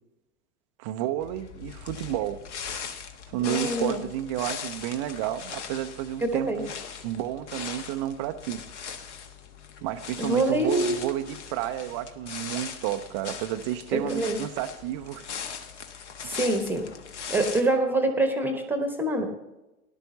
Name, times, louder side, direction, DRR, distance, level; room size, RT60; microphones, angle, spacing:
voice 1, 0.8-2.4 3.3-6.7 7.0-8.6 9.8-15.3 16.2-16.3, right 13 dB, 20° right, 8 dB, 0.4 m, -31 dB
sound 1, 1.2-17.6, left 6 dB, 50° left, 1.4 m, -39 dB
voice 2, 3.4-4.0 6.2-6.6 10.2-11.0 13.9-14.4 16.2-16.9 17.3-19.3, right 2 dB, 5° right, 6 dB, 1.0 m, -25 dB
18.0 x 12.0 x 2.7 m, 1.0 s
figure-of-eight pair, 100°, 44 cm